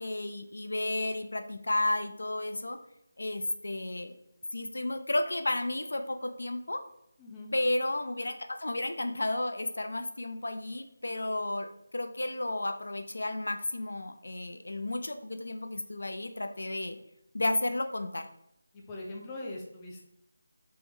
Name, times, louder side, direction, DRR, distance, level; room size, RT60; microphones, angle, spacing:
voice 1, 0.0-2.8 3.2-4.1 4.5-6.8 7.5-17.0 17.3-18.3, left 2 dB, 80° left, 8 dB, 0.4 m, -32 dB
voice 2, 7.2-7.5 18.7-20.1, left 2 dB, 15° left, -1 dB, 0.5 m, -41 dB
3.4 x 3.0 x 3.4 m, 0.79 s
figure-of-eight pair, 170°, 0 cm